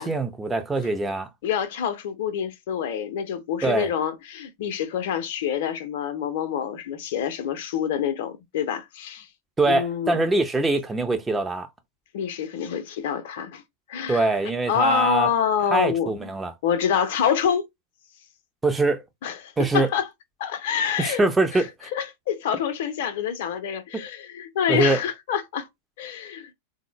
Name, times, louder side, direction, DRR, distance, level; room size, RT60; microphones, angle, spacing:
voice 1, 0.0-1.3 3.6-3.9 9.6-11.7 14.1-15.3 15.7-16.5 18.6-19.0 19.6-19.9 21.0-21.7 24.7-25.0, right 2 dB, 10° right, 0.5 m, -23 dB
voice 2, 1.4-9.3 9.7-10.2 12.1-13.6 13.9-14.3 14.7-16.2 16.6-17.7 19.2-20.1 20.4-21.2 21.5-21.6 21.9-25.7 26.0-26.5, left 8 dB, 55° left, 0.6 m, -26 dB
3.7 x 2.1 x 2.9 m
figure-of-eight pair, 90°, 0 cm